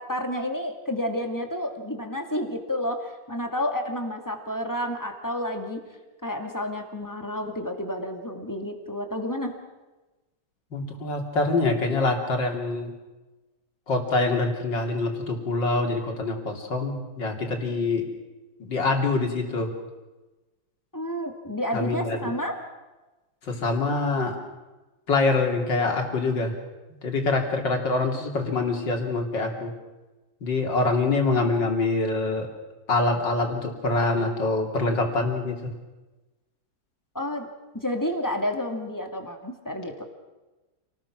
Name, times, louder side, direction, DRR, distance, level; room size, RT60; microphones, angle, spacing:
voice 1, 0.0-5.8 6.2-9.5 20.9-22.6 37.1-37.5 37.7-40.0, left 1 dB, 10° left, 4 dB, 2.2 m, -30 dB
voice 2, 10.7-12.9 13.9-18.1 18.6-19.7 21.7-22.3 23.4-24.4 25.1-26.6 27.0-29.7 30.4-32.5 32.9-35.7, left 3 dB, 60° left, 2 dB, 3.6 m, -25 dB
28.0 x 19.5 x 6.1 m, 1.1 s
omnidirectional pair, 2.2 m